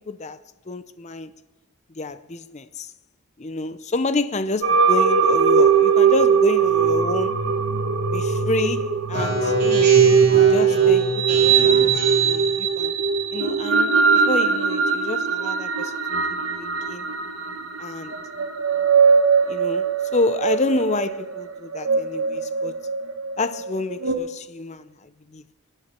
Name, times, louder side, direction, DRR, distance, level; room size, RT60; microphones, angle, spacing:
voice 1, 0.1-0.4 0.7-1.3 1.9-2.9 3.4-7.4 8.1-10.0 10.3-11.8 12.0-13.0 13.3-15.9 16.6-17.0 17.8-18.3 19.5-22.9 23.4-25.4, left 3 dB, 30° left, 0.6 m, -28 dB
sound 1, 4.6-24.1, right 6 dB, 70° right, 1.3 m, -20 dB
Speech synthesizer, 9.1-12.5, left 1 dB, 45° right, 3.5 m, -26 dB
20.5 x 9.1 x 4.4 m
head